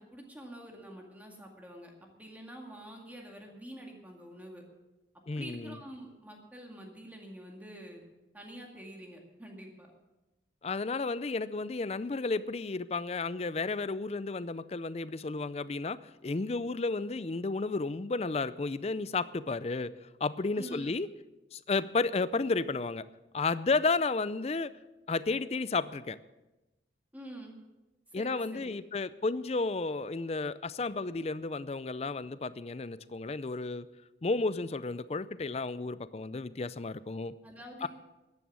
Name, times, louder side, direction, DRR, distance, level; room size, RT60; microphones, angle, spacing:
voice 1, 0.0-1.9 2.2-4.6 5.3-8.1 8.3-9.9 20.6-20.9 27.1-27.6 28.1-28.8 37.4-37.9, right 1 dB, 10° right, 0 dB, 2.0 m, -47 dB
voice 2, 5.3-5.8 10.6-19.9 20.2-21.1 21.5-23.1 23.3-24.7 25.1-26.2 28.1-33.9 34.2-37.3 37.8-37.9, left 3 dB, 35° left, 16 dB, 0.4 m, -32 dB
13.5 x 10.5 x 6.2 m, 1.0 s
head